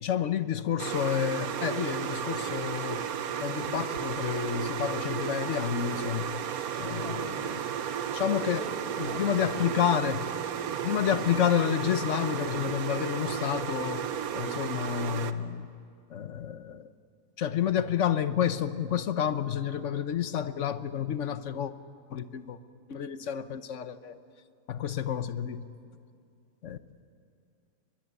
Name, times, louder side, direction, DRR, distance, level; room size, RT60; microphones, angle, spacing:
voice 1, 0.0-3.0 3.4-6.3 6.8-7.6 8.1-8.7 9.0-10.3 10.8-14.1 14.3-15.7 16.1-16.9 17.4-21.7 22.1-22.6 22.9-24.2 24.7-25.7 26.6-26.8, left 9 dB, 50° left, 1.0 m, -30 dB
sound 1, 0.8-15.3, right 8 dB, 60° right, 1.2 m, -33 dB
voice 2, 8.4-9.2, right 2 dB, 5° left, 3.4 m, -43 dB
23.5 x 21.5 x 9.6 m
omnidirectional pair, 2.0 m